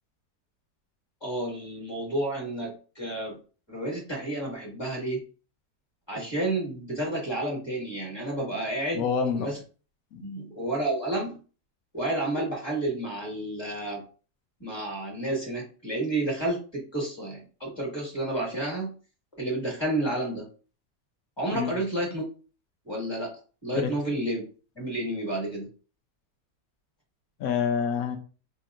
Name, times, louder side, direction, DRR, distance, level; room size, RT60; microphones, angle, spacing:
voice 1, 1.2-3.4 3.7-5.2 6.1-9.1 9.3-9.6 10.2-11.4 11.9-14.0 14.6-18.9 19.4-20.5 21.4-22.2 22.8-23.3 23.6-24.4 24.7-25.7, right 1 dB, 15° left, -3 dB, 1.7 m, -30 dB
voice 2, 8.9-9.5 10.1-10.2 21.5-21.7 23.8-23.9 27.4-28.2, left 6 dB, 70° left, 5 dB, 1.1 m, -27 dB
5.2 x 2.9 x 2.5 m, 0.36 s
omnidirectional pair, 1.7 m